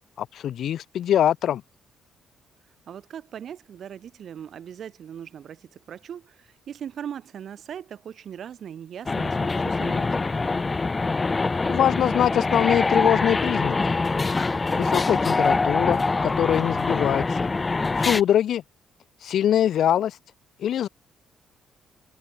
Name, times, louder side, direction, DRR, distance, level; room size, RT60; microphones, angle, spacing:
voice 1, 0.2-1.6 11.7-13.8 14.8-17.4 17.9-18.6 19.2-20.2 20.6-20.9, left 10 dB, 70° left, 0.7 m, -23 dB
voice 2, 2.9-10.3, right 9 dB, 60° right, 3.4 m, -39 dB
sound 1, 9.1-18.2, left 3 dB, 25° left, 1.4 m, -24 dB
cardioid pair, 90°, 0 cm